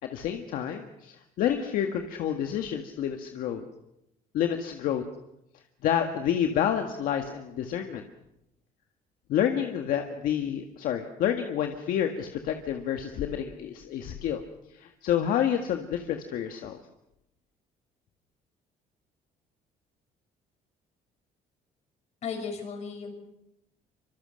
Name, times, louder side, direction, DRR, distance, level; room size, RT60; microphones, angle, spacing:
voice 1, 0.0-3.6 4.3-5.0 5.8-8.0 9.3-14.4 14.7-16.8, left 9 dB, 70° left, 5 dB, 1.8 m, -29 dB
voice 2, 22.2-23.1, left 5 dB, 50° left, 5 dB, 6.0 m, -35 dB
25.5 x 24.5 x 6.5 m, 0.84 s
cardioid pair, 130°, 15 cm